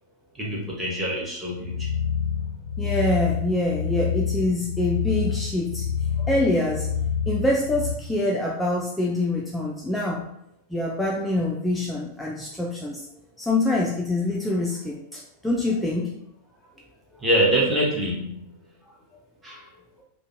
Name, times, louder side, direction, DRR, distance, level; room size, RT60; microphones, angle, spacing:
voice 1, 0.3-1.9 17.2-18.4 19.4-19.7, right 1 dB, 15° right, -4 dB, 0.8 m, -24 dB
sound 1, 1.6-8.0, left 7 dB, 90° left, 0.3 m, -27 dB
voice 2, 2.8-5.9 6.1-6.9 7.3-10.2 10.7-13.0 13.4-16.1, left 2 dB, 5° left, -3 dB, 0.3 m, -25 dB
2.5 x 2.1 x 2.6 m, 0.77 s
figure-of-eight pair, 90°, 0 cm